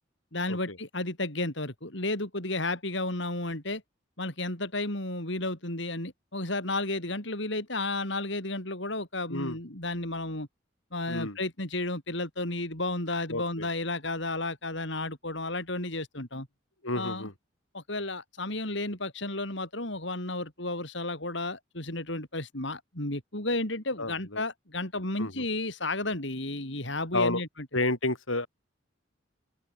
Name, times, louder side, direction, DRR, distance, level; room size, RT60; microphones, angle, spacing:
voice 1, 0.3-3.8 4.2-10.5 10.9-16.5 17.0-17.3 17.7-27.7, left 2 dB, 60° left, 5.3 m, -32 dB
voice 2, 13.3-13.7 16.8-17.3 24.0-24.4 25.2-25.4 27.1-27.4 27.7-28.5, left 2 dB, 80° left, 7.6 m, -30 dB
open air
head